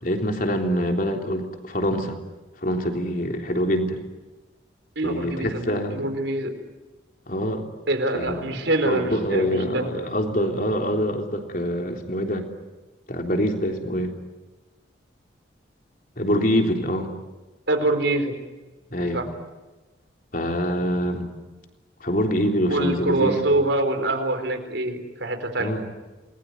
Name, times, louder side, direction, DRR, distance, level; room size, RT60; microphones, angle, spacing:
voice 1, 0.0-2.2 2.6-4.0 5.0-6.0 7.3-7.6 8.1-8.4 8.8-12.5 13.1-14.1 16.2-17.1 18.9-19.3 20.3-21.3 22.0-23.4 25.6-25.9, equal, 45° left, 3 dB, 3.5 m, -25 dB
voice 2, 5.0-6.5 7.9-9.9 17.7-18.3 19.1-19.3 22.7-25.8, right 2 dB, 75° right, 6 dB, 4.4 m, -25 dB
28.0 x 21.0 x 9.7 m, 1.2 s
head